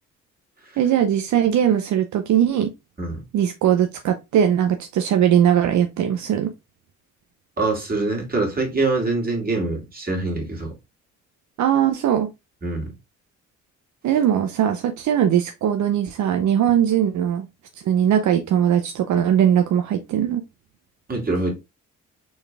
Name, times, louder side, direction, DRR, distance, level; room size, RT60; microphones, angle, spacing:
voice 1, 0.8-2.7 3.3-6.5 11.6-12.3 14.0-17.5 17.9-20.4, right 9 dB, 70° right, 0.7 m, -20 dB
voice 2, 7.6-10.7 12.6-12.9 21.1-21.5, right 3 dB, 30° right, 2.5 m, -24 dB
4.3 x 3.4 x 3.4 m
cardioid pair, 90°, 30 cm